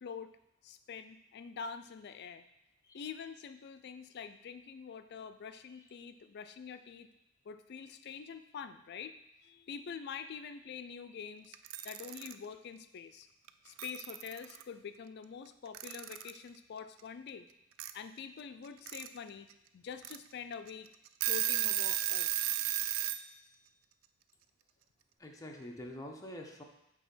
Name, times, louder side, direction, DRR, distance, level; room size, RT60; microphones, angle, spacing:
voice 1, 0.0-0.3 0.6-2.5 2.9-7.1 7.5-9.2 9.4-11.6 11.8-13.3 13.6-17.5 17.9-20.9 21.3-22.3, left 6 dB, 55° left, 10 dB, 0.4 m, -46 dB
Alarm / Clock, 11.5-12.3 13.5-13.6 13.8-14.6 15.7-16.4 17.8-17.9 18.6-19.1 19.5-19.6 20.0-20.2 20.7-20.8 21.1-23.2, right 13 dB, 80° right, 0.3 m, -33 dB
voice 2, 25.2-26.6, left 1 dB, 15° left, 1 dB, 0.7 m, -46 dB
6.2 x 3.4 x 5.5 m, 0.84 s
head